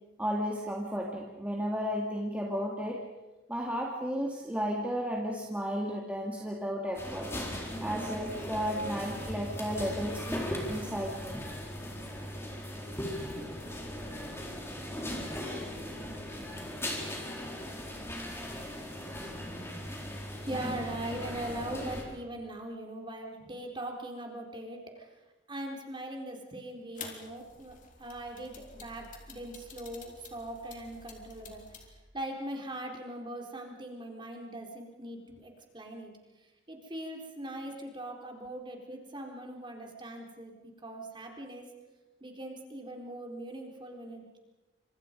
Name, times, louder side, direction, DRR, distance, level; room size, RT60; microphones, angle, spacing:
voice 1, 0.2-3.0 3.5-7.3 7.8-11.4, equal, 5° right, -2 dB, 2.2 m, -33 dB
sound 1, 6.9-22.0, left 1 dB, 15° left, 4.1 m, -38 dB
voice 2, 20.3-25.1 25.5-31.6 32.1-36.1 36.7-41.7 42.2-44.4, right 1 dB, 25° right, 1 dB, 4.1 m, -41 dB
sound 2, 27.0-31.9, left 5 dB, 45° left, 3.7 m, -49 dB
29.5 x 26.5 x 5.3 m, 1.1 s
head